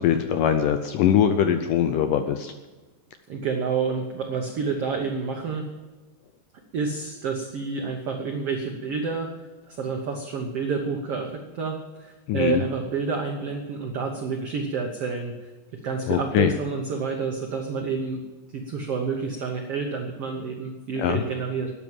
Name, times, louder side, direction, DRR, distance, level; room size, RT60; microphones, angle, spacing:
voice 1, 0.0-2.5 12.3-12.6 16.1-16.5 21.0-21.2, left 9 dB, 80° left, 8 dB, 1.9 m, -22 dB
voice 2, 3.3-5.7 6.7-9.3 9.7-15.3 15.7-18.2 18.5-21.7, right 5 dB, 80° right, 3 dB, 1.3 m, -29 dB
12.5 x 9.9 x 7.4 m, 1.2 s
omnidirectional pair, 4.5 m